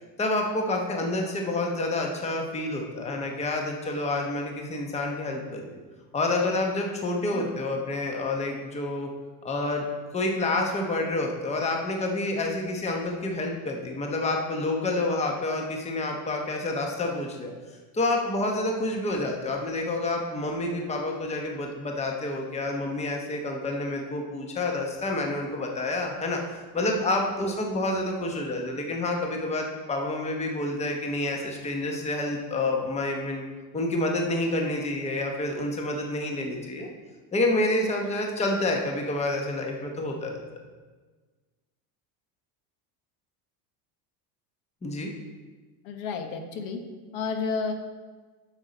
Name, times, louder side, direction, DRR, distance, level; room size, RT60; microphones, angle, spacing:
voice 1, 0.2-5.7 6.1-9.1 9.4-9.9 10.1-17.5 17.9-33.4 33.7-36.9 37.3-40.4 44.8-45.1, left 2 dB, 15° left, 1 dB, 0.9 m, -28 dB
voice 2, 0.7-1.0 7.2-7.5 27.4-27.5 45.8-46.8 47.1-47.7, left 5 dB, 65° left, 5 dB, 1.2 m, -32 dB
8.2 x 6.5 x 4.0 m, 1.4 s
supercardioid pair, 125°, 45 cm